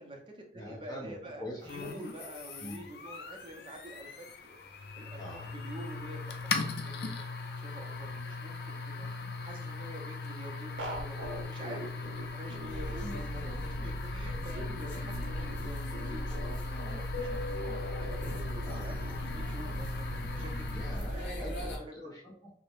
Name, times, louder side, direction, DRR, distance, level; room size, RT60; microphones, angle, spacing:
voice 1, 0.0-7.3 7.6-15.8 16.1-18.5 18.8-20.6 21.1-21.9, right 1 dB, 30° right, 0 dB, 0.5 m, -48 dB
voice 2, 0.5-2.0 2.6-2.9 5.2-5.5 13.0-13.2 18.6-18.9 20.7-22.5, left 1 dB, 20° left, -3 dB, 0.7 m, -44 dB
sound 1, 1.7-21.2, left 4 dB, 60° left, 0.4 m, -40 dB
sound 2, 10.8-21.0, right 1 dB, 90° right, 0.5 m, -45 dB
sound 3, 12.7-21.8, equal, 85° left, 0.8 m, -38 dB
2.7 x 2.0 x 3.0 m, 0.67 s
head